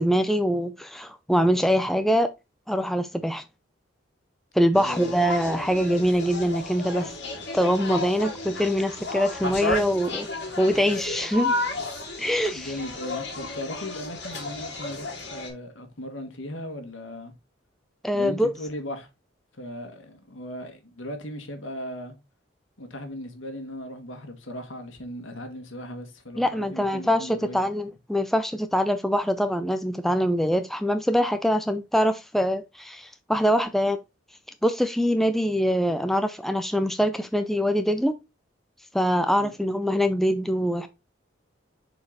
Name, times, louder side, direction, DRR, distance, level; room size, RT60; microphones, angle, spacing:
voice 1, 0.0-2.3 2.7-3.4 4.5-7.1 7.5-10.3 10.6-11.6 12.2-12.7 18.0-18.5 26.4-34.0 34.6-38.2 38.9-40.9, equal, ahead, 0.4 m, -24 dB
voice 2, 4.7-5.2 12.5-17.3 18.1-19.1 19.5-22.1 22.8-27.7 39.4-39.5, left 1 dB, 80° left, 1.7 m, -37 dB
sound 1, 4.7-15.5, left 3 dB, 55° left, 3.8 m, -33 dB
6.8 x 4.3 x 3.9 m
head